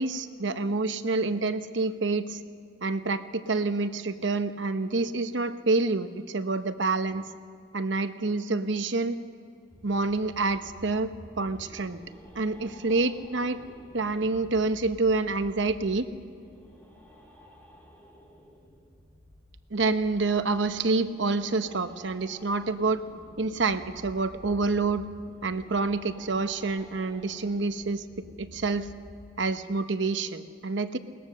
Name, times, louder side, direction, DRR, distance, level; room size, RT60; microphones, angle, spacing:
voice 1, 0.0-2.4 2.8-7.2 7.7-9.2 9.8-11.1 11.4-12.0 12.3-13.6 13.9-16.1 19.7-23.0 23.4-25.1 25.4-28.0 28.4-28.9 29.4-31.0, right 3 dB, 65° right, 10 dB, 0.9 m, -27 dB
sound 1, 9.7-29.3, left 1 dB, 10° left, 2.5 m, -51 dB
21.5 x 19.0 x 6.5 m, 2.3 s
head